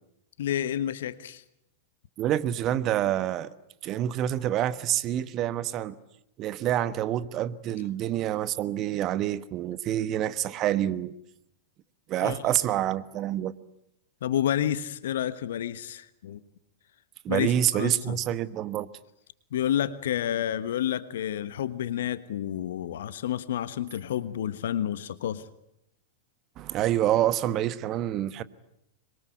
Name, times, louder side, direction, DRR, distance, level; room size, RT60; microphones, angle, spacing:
voice 1, 0.4-1.4 12.2-12.4 14.2-16.4 17.3-18.2 19.5-25.5, left 10 dB, 65° left, 1.3 m, -30 dB
voice 2, 2.2-3.5 3.8-5.9 6.4-11.1 12.1-13.5 17.2-18.9 26.6-28.4, right 12 dB, 35° right, 1.3 m, -27 dB
26.0 x 22.5 x 9.3 m
figure-of-eight pair, 100°, 0 cm